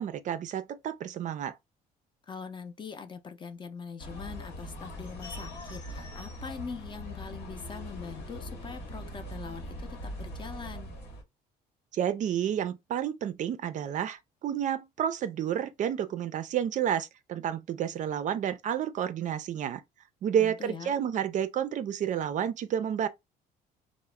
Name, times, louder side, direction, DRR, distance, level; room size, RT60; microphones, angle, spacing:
voice 1, 0.0-1.5 11.9-19.8 20.2-23.1, right 9 dB, 50° right, 0.4 m, -30 dB
voice 2, 2.3-10.9 20.4-21.0, left 5 dB, 30° left, 0.5 m, -42 dB
sound 1, 4.0-11.2, left 1 dB, 85° left, 1.0 m, -41 dB
2.3 x 2.0 x 3.1 m
cardioid pair, 110°, 17 cm